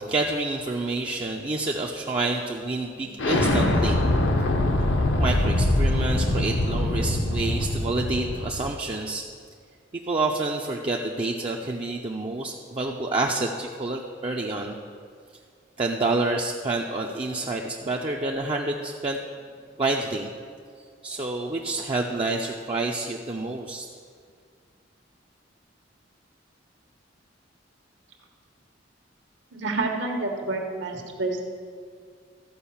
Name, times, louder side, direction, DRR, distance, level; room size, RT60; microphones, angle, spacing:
voice 1, 0.0-4.0 5.2-9.2 10.1-14.8 15.8-19.2 19.8-20.3 21.0-23.9, right 2 dB, 30° right, 0 dB, 0.6 m, -28 dB
Explosion, 3.2-8.7, left 1 dB, 75° left, 1.0 m, -23 dB
voice 2, 29.5-31.5, right 2 dB, 70° right, 2 dB, 1.4 m, -29 dB
13.5 x 4.9 x 7.1 m, 2.1 s
head